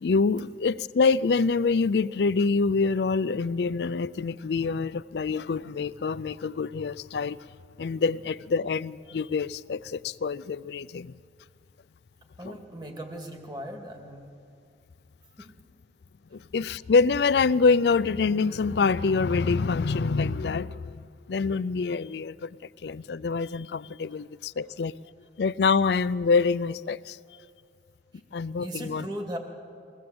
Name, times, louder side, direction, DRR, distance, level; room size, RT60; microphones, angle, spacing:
voice 1, 0.0-7.4 7.8-11.1 12.4-12.6 16.3-22.6 22.8-24.9 25.4-27.2 28.3-29.1, left 4 dB, 70° left, 18 dB, 0.4 m, -26 dB
voice 2, 12.4-14.3 15.4-15.5 28.6-29.4, equal, 25° right, 3 dB, 2.1 m, -37 dB
21.5 x 16.0 x 7.8 m, 2.3 s
head